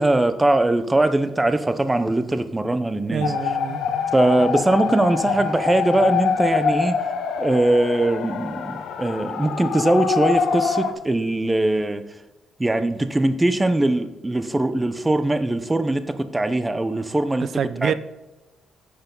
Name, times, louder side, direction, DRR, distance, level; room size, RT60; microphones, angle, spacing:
voice 1, 0.0-3.3 4.1-7.0 7.4-12.0 12.6-17.5 17.8-17.9, right 2 dB, 15° right, 0.9 m, -21 dB
voice 2, 3.1-3.8 17.4-17.9, right 7 dB, 60° right, 0.6 m, -26 dB
sound 1, 3.2-10.9, left 6 dB, 75° left, 1.1 m, -25 dB
11.0 x 6.9 x 4.0 m
cardioid pair, 90°, 0 cm